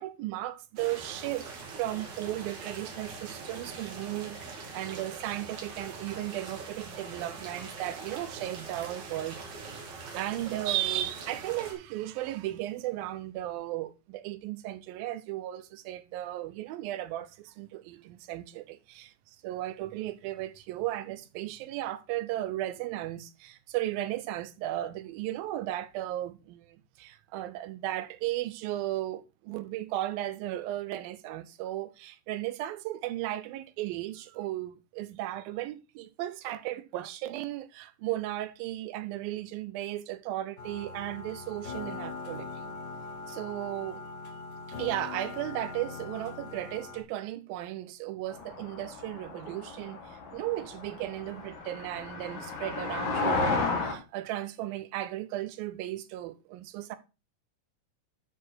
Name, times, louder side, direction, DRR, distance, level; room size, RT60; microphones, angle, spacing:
voice 1, 0.0-1.5 1.8-9.4 9.9-19.1 19.4-42.7 43.3-44.0 44.7-57.0, right 14 dB, 90° right, 2.6 m, -35 dB
sound 1, 0.8-11.7, right 4 dB, 55° right, 3.3 m, -43 dB
sound 2, 40.6-47.0, left 4 dB, 45° left, 1.4 m, -41 dB
sound 3, 48.3-54.0, left 3 dB, 85° left, 3.5 m, -33 dB
13.0 x 4.8 x 4.5 m
omnidirectional pair, 4.0 m